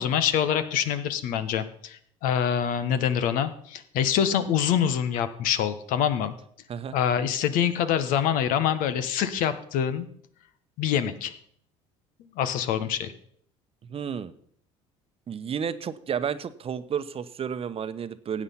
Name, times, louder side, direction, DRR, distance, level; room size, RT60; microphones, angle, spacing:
voice 1, 0.0-6.3 6.9-10.1 10.8-11.3 12.3-13.1, left 9 dB, 65° left, 11 dB, 1.3 m, -25 dB
voice 2, 13.8-14.3 15.3-18.4, right 7 dB, 40° right, 12 dB, 1.0 m, -32 dB
15.5 x 8.7 x 5.7 m, 0.65 s
hypercardioid pair, 65°, 15 cm